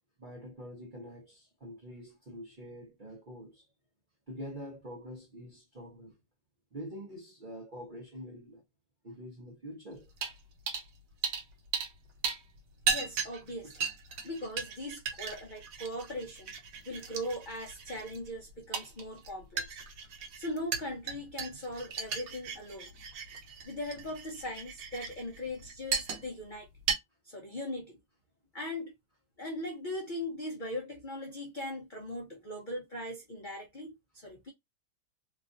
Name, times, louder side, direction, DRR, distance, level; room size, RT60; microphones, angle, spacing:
voice 1, 0.2-3.7 4.3-6.2 6.7-8.6 9.0-10.1 12.9-13.0, equal, 50° right, 0.6 m, -45 dB
sound 1, 10.2-10.4 10.7-10.9 11.2-12.0 12.2-26.5 26.8-27.0, right 6 dB, 75° right, 1.3 m, -36 dB
voice 2, 12.9-13.9 14.2-16.5 16.9-19.8 20.3-22.9 23.6-26.7 27.2-28.0 28.5-28.9 29.4-34.5, left 1 dB, 75° left, 0.4 m, -39 dB
3.1 x 2.4 x 2.4 m
omnidirectional pair, 1.9 m